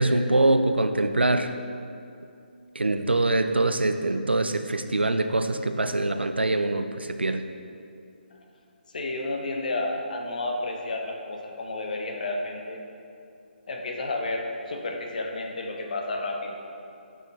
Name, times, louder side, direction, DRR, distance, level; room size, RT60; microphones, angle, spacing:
voice 1, 0.0-1.5 2.8-7.4, right 2 dB, 80° right, 9 dB, 0.4 m, -24 dB
voice 2, 8.9-12.8 13.7-16.6, left 2 dB, 50° left, 1 dB, 0.7 m, -31 dB
6.0 x 5.4 x 3.4 m, 2.5 s
figure-of-eight pair, 145°, 6 cm